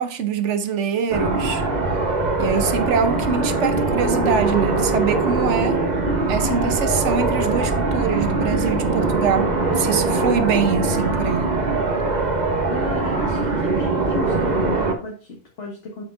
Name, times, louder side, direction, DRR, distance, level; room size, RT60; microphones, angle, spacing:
voice 1, 0.0-1.6 2.4-5.8 6.3-11.5, right 6 dB, 85° right, 1.1 m, -24 dB
sound 1, 1.1-14.9, right 3 dB, 40° right, 1.1 m, -22 dB
voice 2, 12.7-16.0, left 2 dB, 85° left, 1.7 m, -33 dB
8.1 x 6.0 x 2.5 m
omnidirectional pair, 1.2 m